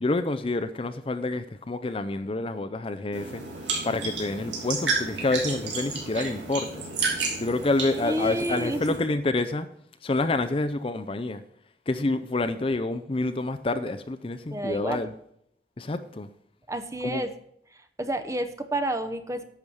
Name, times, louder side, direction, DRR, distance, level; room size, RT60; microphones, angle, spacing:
voice 1, 0.0-3.4 3.8-6.8 7.1-9.7 10.0-11.4 11.9-15.1 15.8-16.3 17.0-17.2, left 2 dB, 30° left, 0.5 m, -28 dB
sound 1, 3.1-9.0, right 4 dB, 90° right, 3.5 m, -31 dB
voice 2, 7.9-8.8 14.5-15.0 16.7-17.3 17.7-19.4, right 1 dB, 15° right, 0.7 m, -30 dB
10.5 x 7.2 x 4.7 m
head